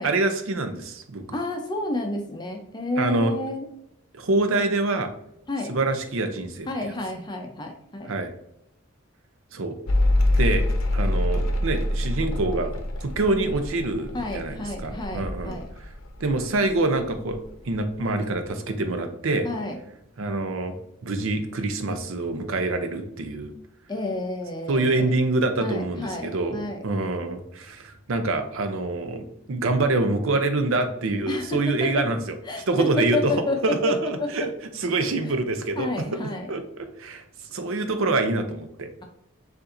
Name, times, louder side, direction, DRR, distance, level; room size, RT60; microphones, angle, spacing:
voice 1, 0.0-1.2 3.0-3.3 4.1-5.1 5.7-6.7 8.1-8.3 9.5-9.8 10.4-10.7 10.9-12.7 13.0-15.9 16.2-17.4 17.7-19.5 20.2-20.7 21.0-23.5 24.7-32.4 32.7-33.3 33.6-36.2 36.5-37.2 37.5-38.9, right 2 dB, 70° right, 7 dB, 0.6 m, -26 dB
voice 2, 1.3-3.7 5.5-5.7 6.7-8.1 14.1-15.6 19.4-19.8 23.9-25.1 25.6-26.8 31.3-32.0 32.5-33.9 34.2-34.5 35.2-35.4 35.8-36.5, left 2 dB, 20° left, 3 dB, 0.5 m, -30 dB
Mechanical fan, 9.9-16.7 17.0-17.8, left 1 dB, 75° left, 0.7 m, -25 dB
6.8 x 2.6 x 2.5 m, 0.78 s
head